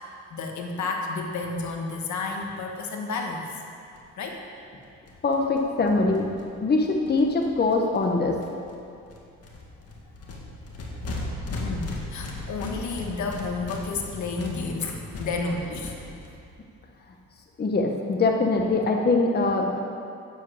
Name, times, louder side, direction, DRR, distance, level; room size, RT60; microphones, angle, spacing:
voice 1, 0.3-3.6 4.2-4.4 11.5-16.0, left 3 dB, 70° left, 2 dB, 1.5 m, -31 dB
sound 1, 3.9-4.0 4.3-4.4 4.6-4.7 4.8-8.1 8.4-8.8 9.1-16.3, left 1 dB, 55° left, 2.0 m, -37 dB
voice 2, 5.2-6.3 6.6-8.4 17.6-19.8, left 3 dB, 35° left, 2 dB, 1.1 m, -23 dB
9.4 x 7.7 x 7.2 m, 2.5 s
cardioid pair, 90°, 30 cm